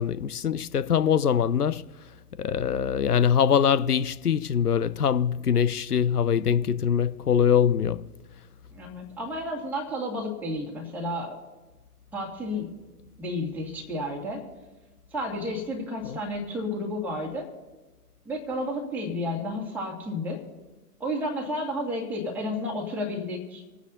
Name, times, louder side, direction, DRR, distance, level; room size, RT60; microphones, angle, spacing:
voice 1, 0.0-1.8 2.4-8.0 16.1-16.2, left 8 dB, 75° left, 0.7 m, -23 dB
voice 2, 8.7-11.4 12.1-12.7 13.2-14.4 15.1-17.5 18.3-20.4 21.0-23.6, left 1 dB, 5° right, 2.0 m, -31 dB
26.5 x 9.3 x 2.7 m
figure-of-eight pair, 115°, 46 cm